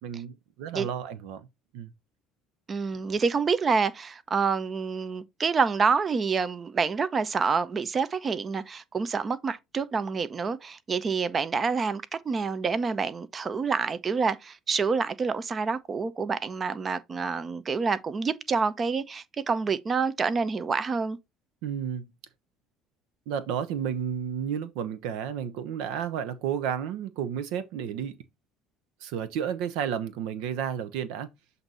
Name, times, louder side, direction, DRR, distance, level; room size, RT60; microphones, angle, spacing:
voice 1, 0.0-1.5 1.7-1.9 21.6-22.1 23.3-28.2 29.0-31.3, right 8 dB, 80° right, 0.7 m, -32 dB
voice 2, 2.7-21.2, right 5 dB, 35° right, 0.7 m, -27 dB
7.7 x 2.7 x 5.5 m
supercardioid pair, 80°, 0 cm